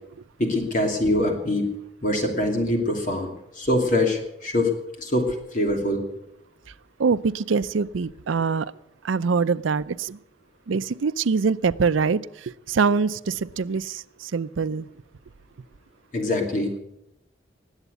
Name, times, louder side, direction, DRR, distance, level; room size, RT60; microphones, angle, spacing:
voice 1, 0.4-1.7 2.0-3.3 3.6-4.7 5.0-6.0 16.1-16.7, left 1 dB, 40° left, 2 dB, 2.8 m, -23 dB
voice 2, 7.0-8.7 9.0-10.2 10.7-14.9, right 5 dB, 90° right, 16 dB, 0.5 m, -24 dB
19.5 x 8.1 x 8.1 m, 0.82 s
head